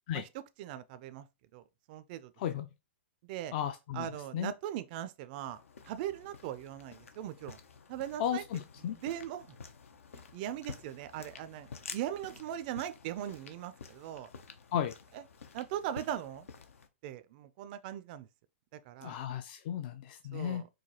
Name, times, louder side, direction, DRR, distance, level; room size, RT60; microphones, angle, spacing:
voice 1, 0.1-1.3 1.5-2.3 3.2-3.5 3.9-7.6 7.9-8.4 8.9-9.6 10.3-14.3 15.1-15.2 15.5-16.5 17.0-18.3 18.7-19.2 20.3-20.7, right 11 dB, 40° right, 0.3 m, -40 dB
voice 2, 3.5-4.5 8.2-9.0 14.7-14.9 19.0-20.6, left 9 dB, 45° left, 0.4 m, -35 dB
sound 1, 5.4-16.9, left 5 dB, 90° left, 0.7 m, -50 dB
4.7 x 2.2 x 2.8 m
hypercardioid pair, 140°, 7 cm